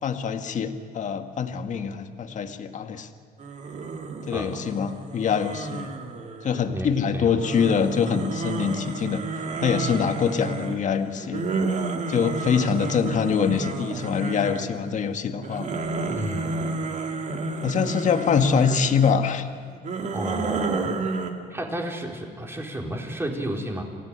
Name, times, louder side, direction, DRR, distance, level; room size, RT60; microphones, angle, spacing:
voice 1, 0.0-3.1 4.3-5.9 6.4-9.2 9.6-11.5 12.1-15.7 17.6-19.5, left 6 dB, 45° left, 7 dB, 1.9 m, -24 dB
sound 1, 3.4-6.8 7.4-14.9 15.3-19.2 19.7-21.3, right 3 dB, 45° right, 2.7 m, -31 dB
voice 2, 16.1-16.5 20.1-20.9 21.5-23.8, right 1 dB, 15° right, 1 dB, 4.4 m, -31 dB
27.0 x 16.5 x 9.9 m, 2.4 s
cardioid pair, 110°, 17 cm